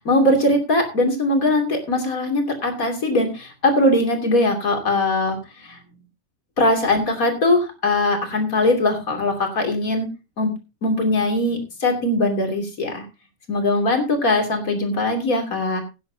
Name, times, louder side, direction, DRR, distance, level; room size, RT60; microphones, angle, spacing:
voice 1, 0.0-5.4 5.6-5.8 6.6-10.1 10.4-10.5 10.8-13.0 13.5-15.8, left 2 dB, 85° left, 3 dB, 3.4 m, -20 dB
18.0 x 9.8 x 2.8 m, 0.29 s
omnidirectional pair, 1.4 m